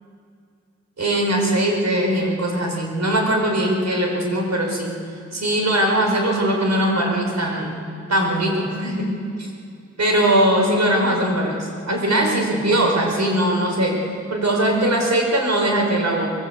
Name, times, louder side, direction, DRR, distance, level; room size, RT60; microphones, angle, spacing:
voice 1, 1.0-4.9 5.3-7.8 8.1-9.1 9.4-9.5 10.0-14.0 14.3-16.3, right 1 dB, 65° right, 0 dB, 5.4 m, -20 dB
23.5 x 20.5 x 8.4 m, 2.4 s
wide cardioid pair, 90°, 30 cm